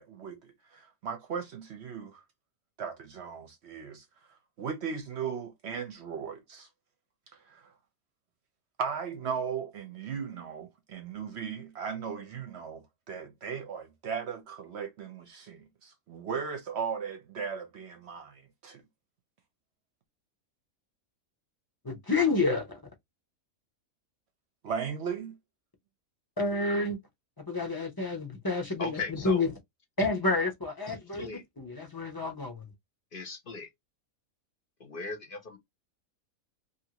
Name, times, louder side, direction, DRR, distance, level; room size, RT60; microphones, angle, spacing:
voice 1, 0.0-2.2 2.8-4.0 4.6-6.7 7.5-7.7 8.8-18.8 24.6-25.3, right 6 dB, 60° right, 0.8 m, -37 dB
voice 2, 21.8-22.8 26.4-27.0 27.5-29.5 30.0-32.6, left 3 dB, 25° left, 0.5 m, -29 dB
voice 3, 28.8-29.4 31.2-31.4 33.1-33.7 34.8-35.6, left 3 dB, 45° left, 0.8 m, -38 dB
2.7 x 2.5 x 2.8 m
omnidirectional pair, 1.5 m